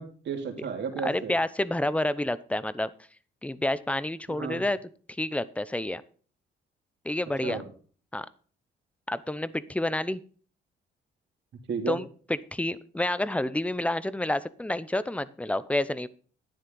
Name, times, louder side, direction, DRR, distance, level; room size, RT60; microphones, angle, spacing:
voice 1, 0.0-1.3 4.3-4.6 7.4-7.6 11.7-12.0, right 6 dB, 65° right, 3 dB, 3.1 m, -33 dB
voice 2, 1.0-2.9 3.4-4.8 5.2-6.0 7.0-7.6 8.1-8.3 9.1-10.2 11.9-16.1, left 1 dB, 5° left, 16 dB, 0.7 m, -29 dB
11.5 x 9.6 x 4.0 m, 0.41 s
cardioid pair, 90°, 20 cm